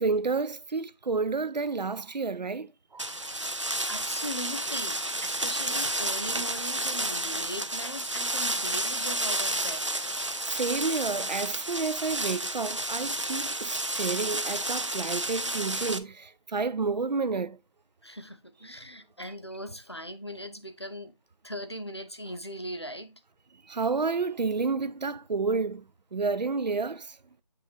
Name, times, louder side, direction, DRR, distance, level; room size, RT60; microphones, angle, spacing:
voice 1, 0.0-3.1 10.5-17.6 23.7-25.8 26.1-27.1, right 4 dB, 90° right, 0.6 m, -30 dB
sound 1, 3.0-16.0, right 1 dB, 45° right, 0.5 m, -31 dB
voice 2, 3.3-10.0 18.0-21.1 21.4-23.2, equal, 40° left, 0.6 m, -40 dB
8.6 x 3.3 x 3.5 m
figure-of-eight pair, 180°, 21 cm